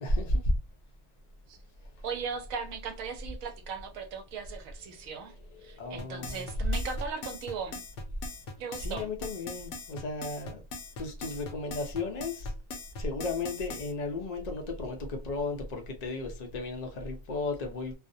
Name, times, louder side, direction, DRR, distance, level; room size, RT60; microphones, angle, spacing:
voice 1, 0.0-0.5 4.9-5.1 5.6-6.5 8.8-10.6 11.0-12.5 13.0-17.9, left 2 dB, 50° left, 0.5 m, -34 dB
voice 2, 2.0-5.3 5.6-7.8 8.6-9.1, right 6 dB, 85° right, 1.0 m, -38 dB
sound 1, 6.0-13.9, left 3 dB, 65° left, 0.9 m, -41 dB
2.5 x 2.0 x 2.6 m
omnidirectional pair, 1.4 m